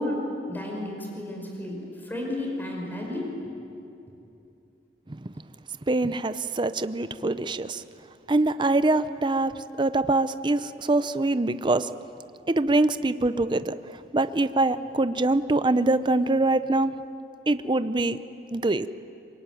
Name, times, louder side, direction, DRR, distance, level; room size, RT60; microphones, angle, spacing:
voice 1, 0.0-3.3, left 1 dB, 10° left, 0 dB, 5.1 m, -32 dB
voice 2, 5.9-7.8 8.3-11.9 12.5-13.8 14.1-16.9 17.5-18.2 18.5-18.9, right 2 dB, 25° right, 12 dB, 0.6 m, -24 dB
25.0 x 22.5 x 9.2 m, 2.7 s
head